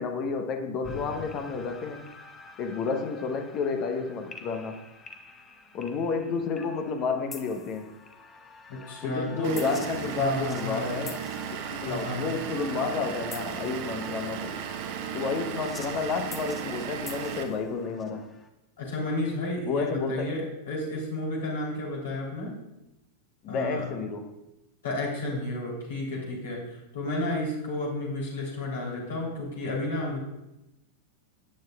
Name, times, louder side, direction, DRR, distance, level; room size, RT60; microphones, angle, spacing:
voice 1, 0.0-2.1 2.6-4.8 5.7-8.0 9.0-11.2 11.7-14.6 15.1-18.3 19.6-20.3 23.4-24.4, left 4 dB, 35° left, 1.0 m, -31 dB
sound 1, 0.8-18.5, left 4 dB, 20° left, 1.1 m, -47 dB
voice 2, 8.7-9.7 10.2-10.9 11.8-12.2 18.8-22.6 23.5-23.8 24.8-30.2, left 2 dB, 60° left, 3.3 m, -32 dB
Vehicle / Engine, 9.4-17.4, right 8 dB, 45° right, 1.1 m, -35 dB
16.5 x 9.5 x 2.4 m
figure-of-eight pair, 90°, 0 cm